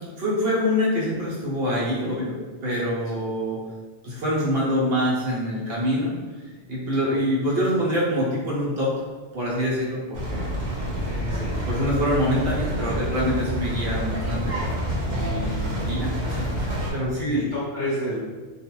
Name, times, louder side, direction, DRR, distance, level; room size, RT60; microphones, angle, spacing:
voice 1, 0.2-3.6 4.0-6.1 6.7-8.9 9.3-10.5 11.0-14.8 15.1-16.4 16.9-17.4, equal, 60° right, -6 dB, 1.1 m, -25 dB
sound 1, 10.1-16.9, equal, 85° right, 1.0 m, -28 dB
voice 2, 11.3-11.6 17.3-18.2, left 1 dB, 60° left, -7 dB, 0.8 m, -30 dB
2.5 x 2.3 x 3.0 m, 1.4 s
omnidirectional pair, 1.2 m